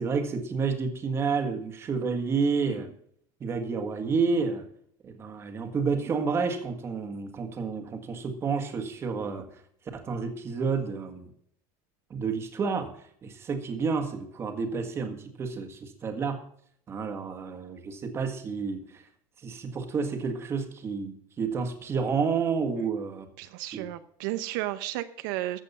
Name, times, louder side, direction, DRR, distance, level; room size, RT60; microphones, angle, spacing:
voice 1, 0.0-2.9 3.4-4.6 5.0-9.5 9.9-11.3 12.1-12.9 13.2-16.4 16.9-19.0 19.4-23.3 23.7-23.8, right 5 dB, 25° right, 6 dB, 1.7 m, -30 dB
voice 2, 23.4-25.6, right 15 dB, 75° right, 11 dB, 0.8 m, -33 dB
14.0 x 7.7 x 5.5 m, 0.65 s
cardioid pair, 165°, 11 cm